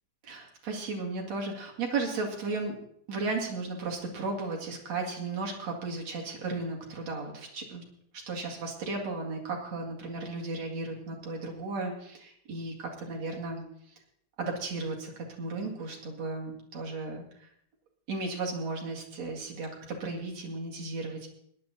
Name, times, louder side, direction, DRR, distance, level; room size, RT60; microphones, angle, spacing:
voice 1, 0.2-2.8 3.1-7.8 8.1-13.6 14.4-17.5 18.1-21.3, right 3 dB, 60° right, 0 dB, 3.2 m, -35 dB
18.0 x 10.5 x 4.1 m, 0.68 s
omnidirectional pair, 3.4 m